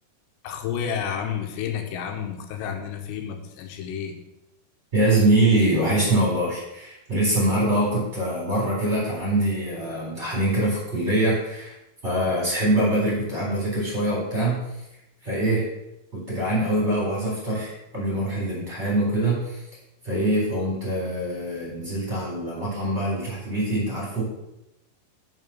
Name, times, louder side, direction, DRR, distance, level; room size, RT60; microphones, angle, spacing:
voice 1, 0.4-4.1, left 8 dB, 85° left, 4 dB, 3.1 m, -30 dB
voice 2, 4.9-11.7 12.0-14.6 15.2-15.7 16.1-19.6 20.0-24.2, right 1 dB, 15° right, -5 dB, 4.1 m, -24 dB
7.3 x 6.5 x 7.1 m, 0.89 s
omnidirectional pair, 4.9 m